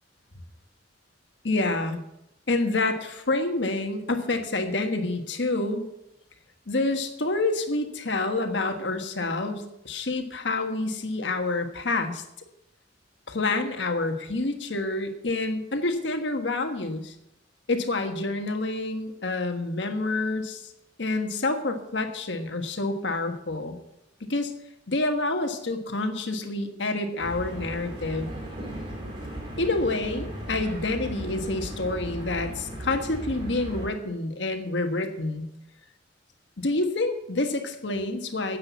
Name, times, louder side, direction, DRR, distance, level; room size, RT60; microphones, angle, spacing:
voice 1, 1.4-2.0 2.5-5.8 6.7-12.2 13.3-17.1 17.7-20.7 21.0-23.7 24.2-24.5 24.9-28.3 29.6-35.5 36.6-38.6, left 2 dB, 85° left, 6 dB, 1.4 m, -28 dB
sound 1, 27.2-33.9, right 1 dB, 30° right, 3.2 m, -36 dB
10.5 x 7.7 x 8.3 m, 0.86 s
head